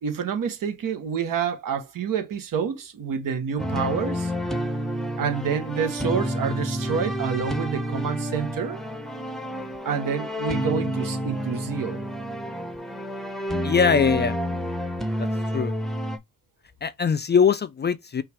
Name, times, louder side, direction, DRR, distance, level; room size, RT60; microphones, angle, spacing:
voice 1, 0.0-4.3 5.2-8.8 9.8-12.0, right 7 dB, 65° right, 1.2 m, -28 dB
sound 1, 3.6-16.2, equal, ahead, 0.8 m, -29 dB
voice 2, 13.6-14.4 15.2-15.3 15.5-15.7 16.8-18.2, left 6 dB, 30° left, 0.4 m, -21 dB
5.6 x 2.5 x 3.4 m
cardioid pair, 105°, 36 cm